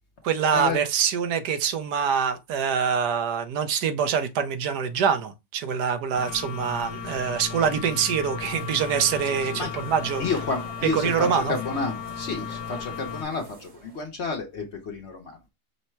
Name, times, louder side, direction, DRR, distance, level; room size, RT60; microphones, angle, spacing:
voice 1, 0.2-10.2 10.8-11.5, right 7 dB, 75° right, 1.2 m, -25 dB
sound 1, 6.1-13.2, left 8 dB, 75° left, 1.1 m, -35 dB
voice 2, 7.0-7.4 9.5-9.7 10.2-15.5, left 4 dB, 55° left, 0.9 m, -31 dB
sound 2, 8.5-14.0, right 3 dB, 50° right, 1.4 m, -45 dB
5.5 x 2.1 x 4.3 m
omnidirectional pair, 1.8 m